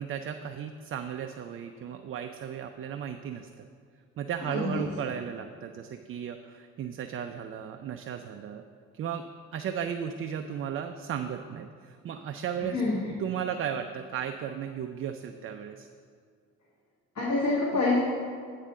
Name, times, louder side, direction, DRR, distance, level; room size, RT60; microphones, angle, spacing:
voice 1, 0.0-3.7 4.2-8.6 8.9-9.3 9.5-12.8 13.2-15.9 17.7-17.8, right 8 dB, 30° right, 6 dB, 0.4 m, -35 dB
voice 2, 4.5-4.8 12.7-13.1 17.1-18.0, left 3 dB, 40° left, -4 dB, 1.6 m, -27 dB
8.9 x 4.0 x 7.0 m, 2.1 s
figure-of-eight pair, 45°, 43 cm